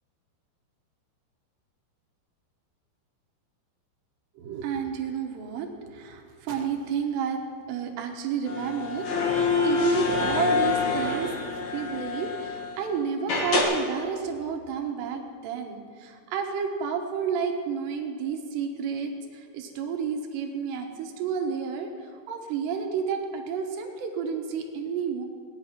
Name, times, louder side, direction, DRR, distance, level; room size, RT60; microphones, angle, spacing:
voice 1, 4.4-11.3 11.6-25.3, right 6 dB, 70° right, 3 dB, 3.0 m, -31 dB
sound 1, 8.5-12.8 13.3-13.6, left 4 dB, 55° left, 2.2 m, -26 dB
19.0 x 10.0 x 5.8 m, 2.2 s
omnidirectional pair, 5.7 m